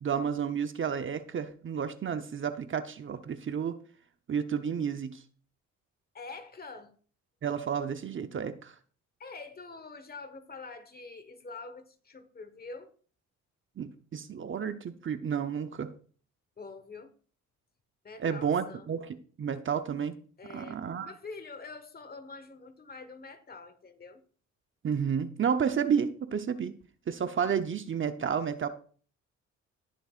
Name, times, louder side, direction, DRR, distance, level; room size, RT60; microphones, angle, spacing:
voice 1, 0.0-3.8 4.3-5.2 7.4-8.7 13.8-15.9 18.2-20.1 20.5-21.1 24.8-26.7 27.1-28.7, right 7 dB, 40° right, 0.8 m, -31 dB
voice 2, 6.1-6.9 9.2-12.9 16.6-17.1 18.0-18.9 20.4-24.2, left 3 dB, 30° left, 1.4 m, -45 dB
19.0 x 6.6 x 2.5 m
cardioid pair, 90°, 30 cm